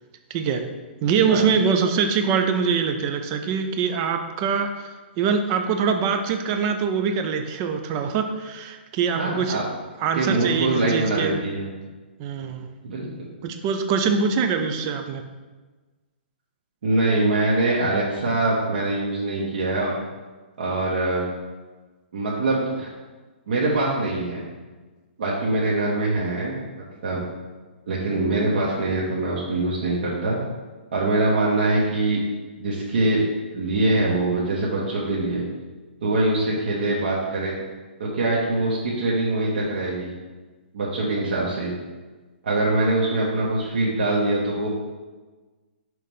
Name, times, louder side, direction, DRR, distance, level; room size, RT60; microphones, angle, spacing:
voice 1, 0.3-0.7 1.0-9.6 10.0-11.4 12.2-12.7 13.4-15.2, right 6 dB, 20° right, 6 dB, 0.4 m, -23 dB
voice 2, 9.2-9.6 10.1-11.7 12.8-13.1 16.8-19.9 20.6-21.2 22.1-22.9 23.5-24.4 25.2-26.6 27.0-27.2 27.9-30.4 30.9-32.2 32.6-33.2 33.5-35.4 36.0-37.6 38.0-40.1 40.7-41.7 42.4-44.7, right 2 dB, 55° right, -6 dB, 1.3 m, -23 dB
5.7 x 3.2 x 5.4 m, 1.3 s
hypercardioid pair, 170°, 6 cm